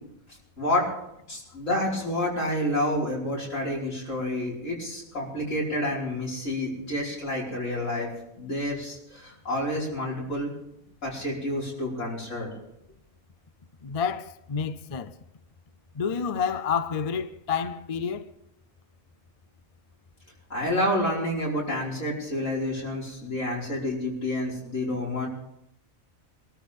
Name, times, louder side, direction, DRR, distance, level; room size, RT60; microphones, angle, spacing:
voice 1, 0.6-0.9 1.3-8.1 8.4-10.5 11.0-12.5 20.5-25.3, left 1 dB, 65° left, 5.5 m, -29 dB
voice 2, 13.8-15.1 15.9-18.3, left 6 dB, 45° left, 0.5 m, -29 dB
24.0 x 13.5 x 3.6 m
omnidirectional pair, 1.4 m